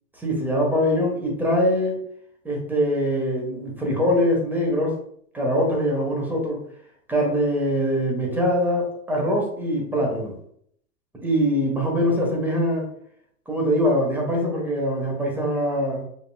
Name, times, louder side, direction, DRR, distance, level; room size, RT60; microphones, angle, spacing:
voice 1, 0.2-2.0 2.4-5.0 5.3-6.6 7.1-10.4 11.2-12.9 13.5-16.0, equal, 5° right, -1 dB, 1.1 m, -23 dB
5.2 x 2.9 x 2.3 m, 0.67 s
hypercardioid pair, 125°, 44 cm